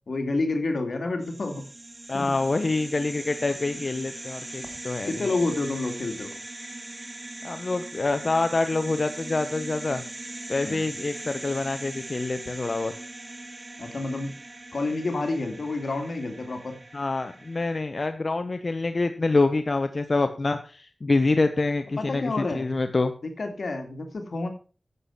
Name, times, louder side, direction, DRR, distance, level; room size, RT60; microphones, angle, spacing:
voice 1, 0.1-1.6 2.1-2.3 5.1-6.3 10.6-10.9 13.8-14.4 14.7-16.8 22.0-22.8 23.2-24.5, left 3 dB, 85° left, 5 dB, 2.5 m, -29 dB
sound 1, 1.2-17.8, right 2 dB, 40° right, 2.6 m, -40 dB
voice 2, 2.1-5.2 7.4-10.0 10.5-12.9 16.9-23.1, left 3 dB, 60° left, 8 dB, 1.0 m, -26 dB
11.0 x 8.3 x 5.8 m, 0.38 s
wide cardioid pair, 60°, 0 cm